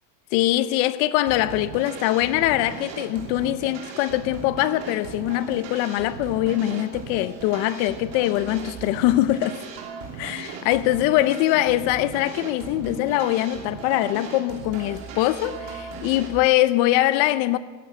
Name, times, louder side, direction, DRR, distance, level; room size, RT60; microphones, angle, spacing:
voice 1, 0.3-9.6 10.2-17.6, left 15 dB, 65° left, 0.7 m, -22 dB
sound 1, 1.3-16.4, right 6 dB, 70° right, 3.1 m, -37 dB
13.5 x 9.9 x 7.9 m
cardioid pair, 145°, 37 cm